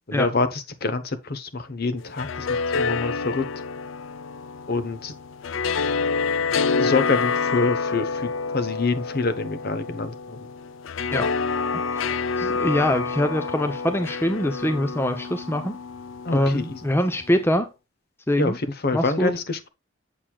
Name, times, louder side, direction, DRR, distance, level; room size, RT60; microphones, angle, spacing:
voice 1, 0.1-3.5 4.7-5.1 6.8-10.5 16.2-16.8 18.4-19.7, left 3 dB, 50° left, 0.9 m, -26 dB
sound 1, 2.0-17.2, left 4 dB, 65° left, 0.4 m, -28 dB
voice 2, 12.4-15.7 16.3-17.7 18.3-18.6 18.9-19.3, left 1 dB, 10° left, 0.7 m, -23 dB
7.6 x 6.6 x 2.3 m
head